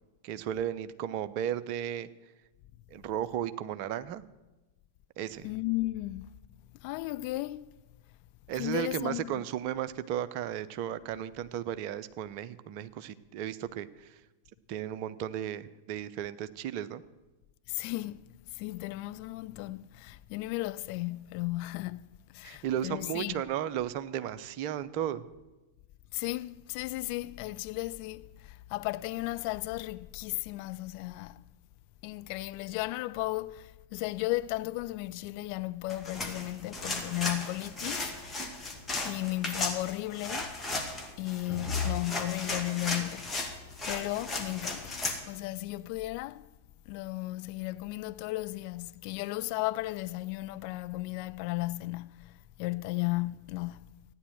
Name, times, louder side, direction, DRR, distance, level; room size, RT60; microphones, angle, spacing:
voice 1, 0.2-2.1 2.9-4.2 5.2-5.5 8.5-14.1 14.7-17.0 22.4-25.2, right 10 dB, 45° right, 0.8 m, -34 dB
voice 2, 5.4-6.3 6.8-7.7 8.6-9.4 17.7-18.2 18.6-23.4 26.1-31.4 32.0-38.1 39.0-40.5 41.2-43.5 43.9-45.0 45.3-46.4 46.9-52.2 52.6-53.8, left 19 dB, 45° left, 0.5 m, -35 dB
sound 1, 35.9-45.2, left 3 dB, 10° left, 2.3 m, -35 dB
14.5 x 9.9 x 7.8 m
figure-of-eight pair, 95°, 0 cm